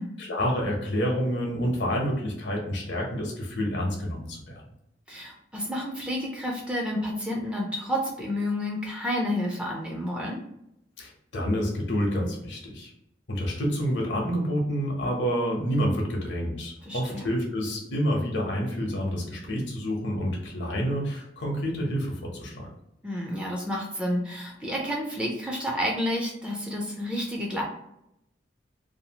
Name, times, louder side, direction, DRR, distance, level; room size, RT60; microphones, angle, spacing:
voice 1, 0.2-4.6 11.0-12.9 13.3-22.7, equal, 70° left, 0 dB, 0.8 m, -28 dB
voice 2, 5.1-10.4 16.9-17.3 23.0-27.6, left 1 dB, 5° right, -2 dB, 0.5 m, -30 dB
2.7 x 2.4 x 2.8 m, 0.80 s
head